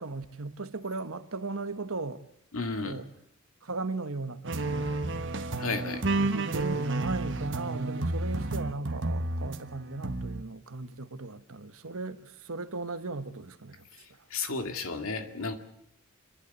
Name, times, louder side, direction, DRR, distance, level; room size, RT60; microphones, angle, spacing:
voice 1, 0.0-2.2 2.8-3.1 3.6-4.9 6.1-13.9, right 3 dB, 80° right, 1.2 m, -36 dB
voice 2, 2.5-3.0 5.6-6.0 14.3-15.6, left 3 dB, 75° left, 2.2 m, -33 dB
sound 1, 4.5-9.6 10.0-10.4, right 2 dB, 55° right, 1.3 m, -31 dB
28.0 x 11.5 x 8.2 m
head